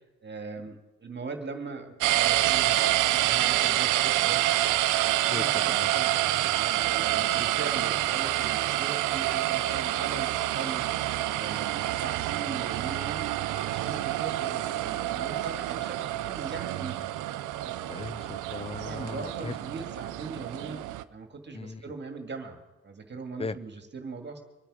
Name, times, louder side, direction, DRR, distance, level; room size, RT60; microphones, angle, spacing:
voice 1, 0.2-4.4 5.2-17.1 17.6-17.8 18.8-20.8 21.1-22.6 22.8-24.4, right 4 dB, 35° right, 5 dB, 2.0 m, -40 dB
sound 1, 2.0-21.0, right 15 dB, 90° right, 0.6 m, -27 dB
voice 2, 5.3-5.9 17.9-19.6 21.5-21.8 23.4-23.6, left 4 dB, 20° left, 17 dB, 0.5 m, -37 dB
25.0 x 9.1 x 4.9 m, 1.1 s
cardioid pair, 90°, 30 cm